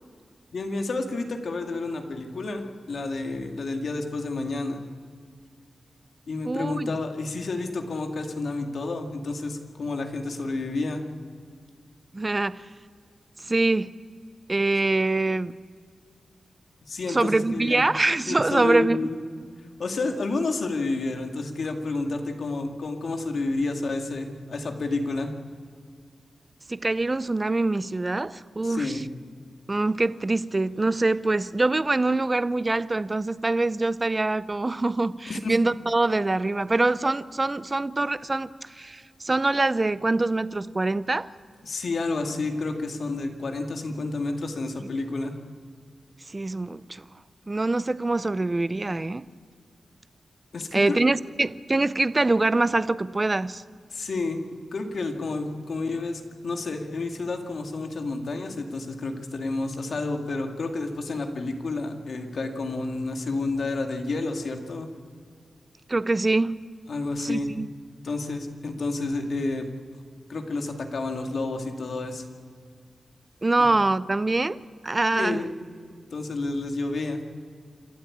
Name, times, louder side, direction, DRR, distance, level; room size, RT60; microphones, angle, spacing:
voice 1, 0.5-4.8 6.3-11.0 16.9-17.9 18.3-19.2 19.8-25.3 28.6-29.0 35.3-35.5 41.6-45.4 50.5-51.0 53.9-54.4 54.7-64.9 66.9-67.5 68.0-69.7 70.3-72.2 73.6-73.7 75.1-75.5 76.1-77.2, left 3 dB, 60° left, 4 dB, 2.1 m, -30 dB
voice 2, 6.4-6.9 12.1-12.7 13.4-13.9 14.5-15.5 17.1-19.1 26.7-29.0 29.7-41.3 46.3-47.1 47.5-49.3 50.7-53.6 65.9-66.6 67.2-67.7 73.4-74.6 74.8-75.4, right 2 dB, 20° right, 16 dB, 0.4 m, -24 dB
28.0 x 12.5 x 8.5 m, 2.1 s
wide cardioid pair, 150°, 0 cm